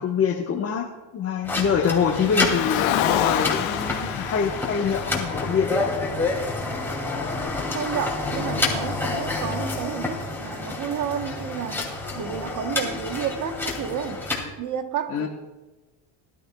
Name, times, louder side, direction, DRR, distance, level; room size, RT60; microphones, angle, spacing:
voice 1, 0.0-5.9 15.1-15.3, left 6 dB, 30° left, 0 dB, 1.1 m, -25 dB
sound 1, 1.4-14.4, left 3 dB, 5° left, 2.3 m, -29 dB
Car, 1.9-6.3, left 12 dB, 70° left, 1.0 m, -28 dB
voice 2, 7.7-11.9 12.1-14.2 14.6-15.3, right 8 dB, 40° right, 8 dB, 1.0 m, -31 dB
20.5 x 12.0 x 2.2 m, 1.1 s
cardioid pair, 130°, 48 cm